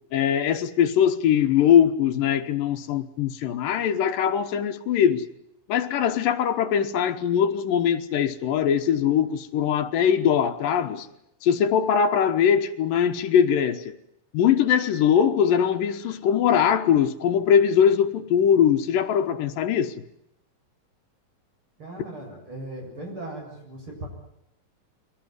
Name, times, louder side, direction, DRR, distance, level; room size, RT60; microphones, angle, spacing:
voice 1, 0.1-5.3 5.7-11.1 11.4-14.0 14.3-19.9, left 8 dB, 75° left, 2.8 m, -21 dB
voice 2, 21.8-24.1, right 1 dB, 35° right, 8.5 m, -38 dB
23.5 x 18.0 x 9.7 m
omnidirectional pair, 4.1 m